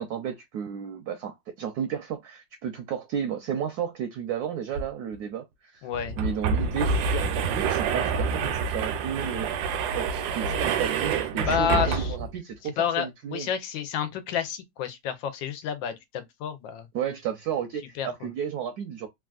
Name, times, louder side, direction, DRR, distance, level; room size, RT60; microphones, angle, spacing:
voice 1, 0.0-5.9 6.2-9.5 10.0-13.5 16.9-19.1, right 8 dB, 70° right, 0.9 m, -33 dB
sound 1, 4.7-4.8 5.1-5.2 5.9-12.4, right 5 dB, 85° right, 1.3 m, -27 dB
voice 2, 5.8-6.2 11.4-12.2 12.8-16.9 18.0-18.1, left 8 dB, 90° left, 1.4 m, -29 dB
3.3 x 2.4 x 2.3 m
omnidirectional pair, 2.0 m